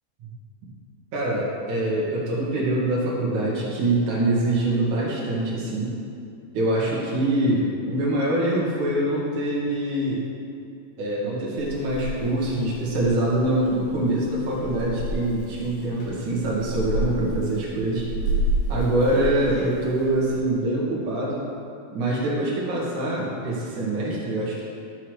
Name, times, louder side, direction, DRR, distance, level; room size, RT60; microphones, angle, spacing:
voice 1, 1.1-5.9 6.5-10.2 11.0-18.0 18.7-21.4 21.9-24.6, right 1 dB, 55° right, -5 dB, 2.6 m, -24 dB
Purr / Meow, 11.6-20.4, right 1 dB, 70° left, 1.6 m, -31 dB
13.0 x 5.6 x 4.8 m, 2.4 s
omnidirectional pair, 5.0 m